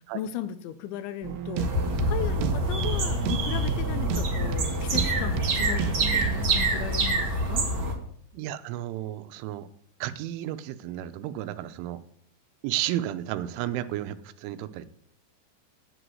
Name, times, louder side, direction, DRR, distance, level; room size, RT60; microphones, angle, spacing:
voice 1, 0.0-7.7, left 11 dB, 85° left, 12 dB, 3.1 m, -37 dB
sound 1, 1.2-6.4, right 8 dB, 75° right, 2.3 m, -32 dB
sound 2, 1.6-7.9, right 1 dB, 50° right, 1.6 m, -26 dB
voice 2, 8.3-9.7 10.0-12.0 12.6-14.9, right 13 dB, 90° right, 12 dB, 3.2 m, -32 dB
11.5 x 8.0 x 7.8 m, 0.64 s
omnidirectional pair, 5.4 m